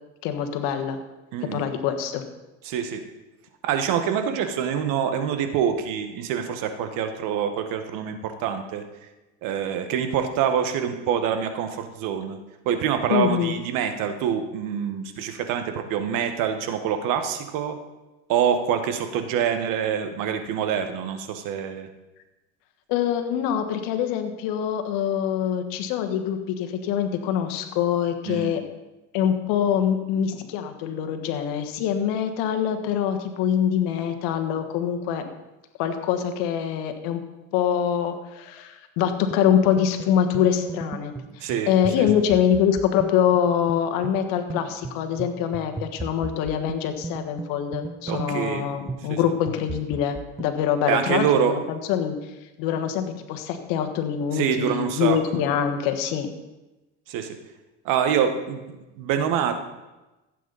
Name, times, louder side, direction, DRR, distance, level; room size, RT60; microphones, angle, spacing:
voice 1, 0.2-1.0 1.5-2.2 13.1-13.6 22.9-28.6 29.1-35.3 35.8-37.2 37.5-52.3 52.6-56.3, left 9 dB, 80° left, 7 dB, 1.5 m, -24 dB
voice 2, 1.3-1.6 2.6-3.0 3.6-8.8 9.4-12.4 12.6-17.8 18.3-21.9 28.3-28.5 41.4-41.7 42.0-42.1 48.1-48.6 49.1-49.2 50.9-51.5 54.3-55.2 57.1-57.4 57.8-59.5, right 8 dB, 75° right, 7 dB, 1.5 m, -25 dB
sound 1, 39.3-50.6, right 3 dB, 10° right, 0.3 m, -37 dB
15.0 x 8.4 x 4.1 m, 1.1 s
supercardioid pair, 100°, 33 cm